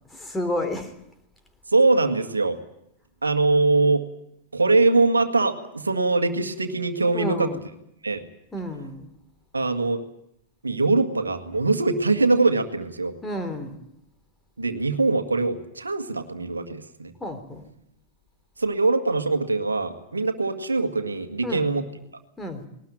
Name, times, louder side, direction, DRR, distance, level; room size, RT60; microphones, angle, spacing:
voice 1, 0.1-0.9 7.1-7.6 8.5-9.1 13.2-13.8 17.2-17.6 21.4-21.8 22.4-22.7, left 1 dB, 10° left, 7 dB, 3.4 m, -31 dB
voice 2, 1.7-2.6 3.2-4.0 4.5-7.5 8.0-8.2 9.5-10.0 10.6-13.1 14.6-17.1 18.6-21.8, right 3 dB, 80° right, 7 dB, 1.8 m, -22 dB
20.5 x 19.0 x 9.0 m, 0.78 s
figure-of-eight pair, 90°, 0 cm